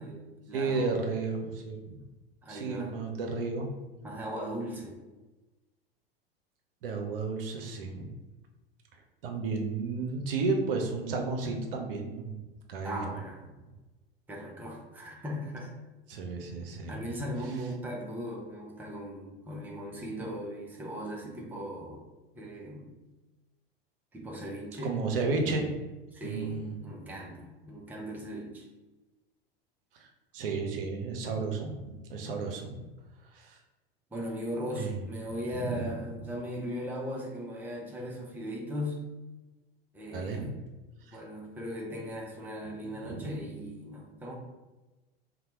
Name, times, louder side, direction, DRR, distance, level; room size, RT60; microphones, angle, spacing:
voice 1, 0.0-1.0 2.4-3.0 4.0-5.0 12.8-13.4 14.3-15.7 16.9-22.0 22.4-23.0 24.1-25.0 26.1-28.7 34.1-39.1 39.9-40.5 41.1-44.3, equal, 5° right, -1 dB, 0.4 m, -38 dB
voice 2, 0.5-2.0 2.5-3.7 6.8-8.1 9.2-12.3 12.7-13.1 16.1-17.0 24.8-25.8 26.2-26.7 29.9-30.1 30.3-32.8 33.3-33.6 34.6-35.0 35.5-35.9 40.1-40.6 41.1-41.2 43.0-43.3, right 4 dB, 65° right, 3 dB, 0.6 m, -33 dB
2.8 x 2.1 x 2.9 m, 1.1 s
figure-of-eight pair, 80°, 30 cm